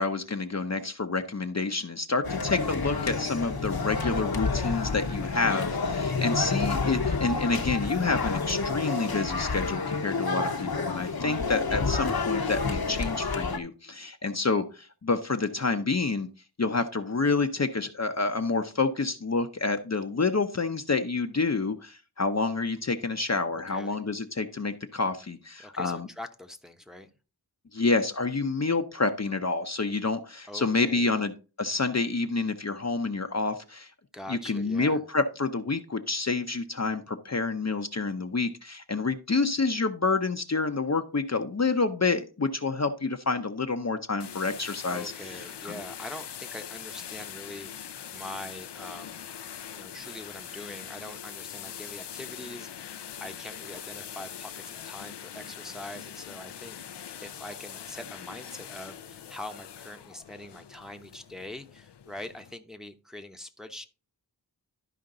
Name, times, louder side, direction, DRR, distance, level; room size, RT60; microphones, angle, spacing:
voice 1, 0.0-16.3 16.6-26.1 27.7-31.3 31.6-33.9 34.3-45.1 45.6-45.8, left 3 dB, 40° left, 0.7 m, -28 dB
sound 1, 2.2-13.6, left 4 dB, 60° left, 1.0 m, -29 dB
voice 2, 23.5-24.0 25.6-27.1 30.5-31.1 34.1-35.0 44.9-47.7 48.1-49.2 49.7-63.9, left 1 dB, ahead, 0.9 m, -43 dB
sound 2, 44.2-62.5, left 9 dB, 75° left, 0.6 m, -42 dB
12.0 x 5.1 x 3.8 m
wide cardioid pair, 65°, 41 cm